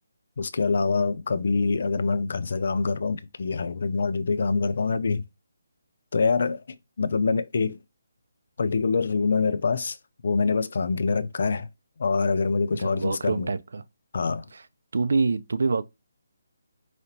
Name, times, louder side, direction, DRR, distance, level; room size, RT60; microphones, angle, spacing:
voice 1, 0.4-5.2 6.1-7.8 8.6-10.0 10.2-11.7 12.0-13.5 14.1-14.5, left 4 dB, 60° left, 0.4 m, -25 dB
voice 2, 12.7-13.8 14.5-14.6 14.9-15.8, right 4 dB, 70° right, 0.5 m, -26 dB
5.0 x 2.8 x 2.9 m
hypercardioid pair, 160°, 0 cm